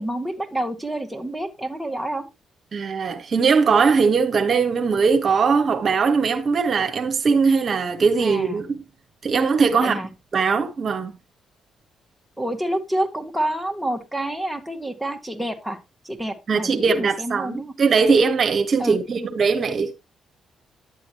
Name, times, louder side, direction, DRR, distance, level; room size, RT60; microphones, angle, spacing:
voice 1, 0.0-2.2 8.2-8.6 9.7-10.1 12.4-15.8 16.0-17.7 18.8-19.0, right 1 dB, 5° right, 1.9 m, -28 dB
voice 2, 2.7-8.8 9.2-10.0 10.3-11.1 16.5-19.9, right 5 dB, 50° right, 1.3 m, -20 dB
11.0 x 7.7 x 3.0 m
supercardioid pair, 60°, 0 cm